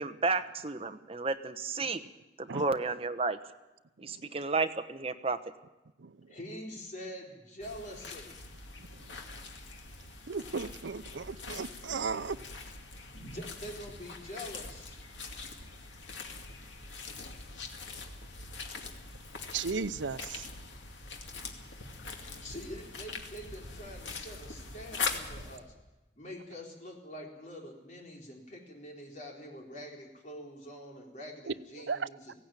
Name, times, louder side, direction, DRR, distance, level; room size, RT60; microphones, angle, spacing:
voice 1, 0.0-2.0 2.4-3.4 4.0-5.4, right 3 dB, 30° right, 9 dB, 0.9 m, -32 dB
voice 2, 6.3-8.3 13.1-15.0 22.4-25.7 26.2-32.3, equal, 40° left, 0 dB, 3.9 m, -45 dB
sound 1, 7.6-25.6, left 4 dB, 90° left, 2.2 m, -42 dB
voice 3, 10.3-12.4 19.5-20.5 31.5-32.1, right 5 dB, 90° right, 15 dB, 0.7 m, -35 dB
17.5 x 16.5 x 9.1 m, 1.0 s
head